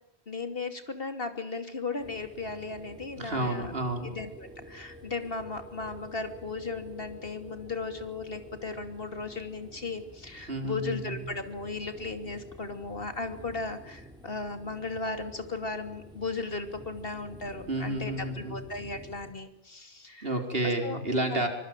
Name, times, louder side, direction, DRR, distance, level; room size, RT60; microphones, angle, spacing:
voice 1, 0.3-3.7 4.0-20.3 20.6-21.0 21.3-21.4, left 3 dB, 60° left, 8 dB, 3.1 m, -36 dB
sound 1, 2.0-19.3, equal, 5° right, 4.2 m, -50 dB
voice 2, 3.2-4.1 10.5-11.2 17.7-18.6 20.2-21.5, right 1 dB, 65° right, 5 dB, 4.8 m, -30 dB
25.0 x 23.5 x 9.1 m, 0.77 s
omnidirectional pair, 1.1 m